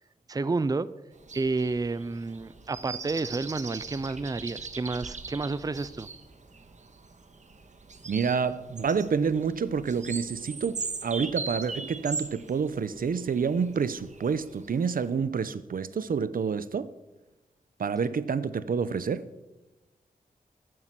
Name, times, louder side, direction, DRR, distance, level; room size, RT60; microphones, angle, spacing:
voice 1, 0.3-0.9 1.3-6.1, right 3 dB, 25° right, 0.5 m, -30 dB
sound 1, 1.2-15.1, right 4 dB, 55° right, 1.6 m, -40 dB
voice 2, 8.1-16.9 17.8-19.3, right 6 dB, 75° right, 0.8 m, -28 dB
14.5 x 12.5 x 7.6 m
wide cardioid pair, 95°, 15 cm